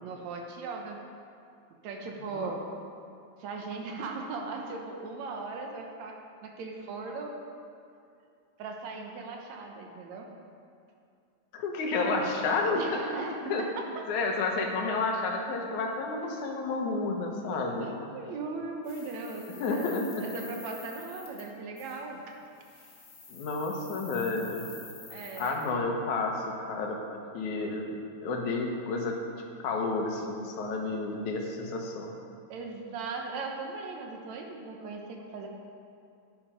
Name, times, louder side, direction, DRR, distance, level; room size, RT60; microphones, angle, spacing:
voice 1, 0.0-1.0 1.8-2.6 3.4-7.3 8.6-10.3 12.7-14.0 17.8-22.4 25.1-25.6 32.5-35.5, right 3 dB, 75° right, 2 dB, 2.3 m, -38 dB
voice 2, 11.5-13.0 13.5-13.6 14.1-17.9 19.6-20.1 23.3-24.7 25.4-27.9 28.2-29.2 29.6-32.1, left 3 dB, 85° left, 1 dB, 2.6 m, -30 dB
sound 1, 18.8-21.5 21.8-22.0 22.6-25.7, left 4 dB, 50° left, 3.0 m, -48 dB
10.5 x 9.8 x 5.1 m, 2.5 s
omnidirectional pair, 3.3 m